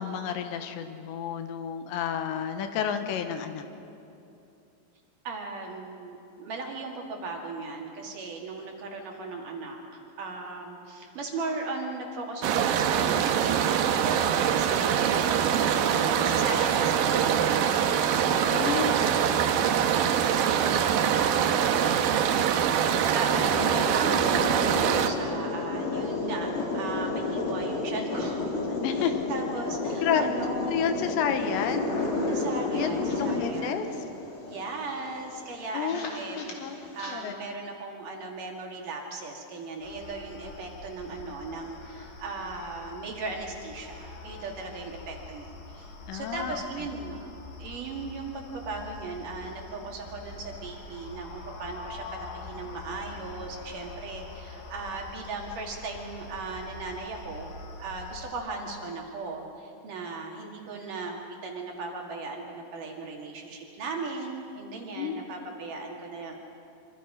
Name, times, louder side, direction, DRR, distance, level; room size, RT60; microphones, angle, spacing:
voice 1, 0.0-3.6 18.5-18.9 28.8-29.2 30.0-30.3 30.7-32.0 32.7-34.0 35.7-36.8 37.1-37.3 46.1-46.9 65.0-65.1, left 8 dB, 80° left, 7 dB, 3.3 m, -30 dB
voice 2, 5.2-22.3 23.0-26.5 26.7-28.6 28.9-30.9 32.3-34.0 34.5-36.6 36.9-47.3 47.6-57.5 57.8-66.4, right 3 dB, 55° right, 0 dB, 3.2 m, -37 dB
sound 1, 12.4-25.1, right 8 dB, 75° right, 2.3 m, -24 dB
sound 2, 23.3-37.1, left 3 dB, 45° left, 3.6 m, -31 dB
sound 3, 39.8-58.3, left 3 dB, 65° left, 3.8 m, -44 dB
25.5 x 25.5 x 5.5 m, 2.8 s
omnidirectional pair, 5.1 m